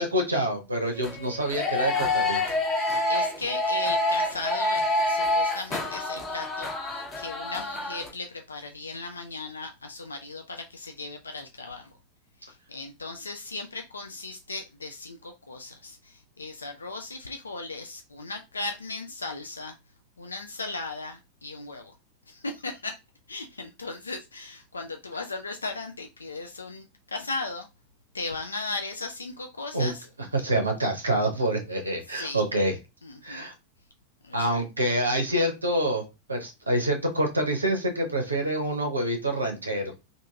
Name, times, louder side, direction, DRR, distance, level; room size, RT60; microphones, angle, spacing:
voice 1, 0.0-2.4 29.7-29.9 30.3-32.7 33.2-33.5 34.3-39.9, right 1 dB, 80° right, 0.6 m, -26 dB
sound 1, 0.9-8.1, left 2 dB, 20° left, 0.9 m, -27 dB
voice 2, 2.8-11.9 12.4-19.8 20.2-21.9 22.3-23.0 23.3-27.7 28.1-30.1 32.2-32.4 33.0-33.5 34.2-34.6, left 3 dB, 75° left, 0.3 m, -37 dB
2.7 x 2.6 x 2.3 m
figure-of-eight pair, 90°, 0 cm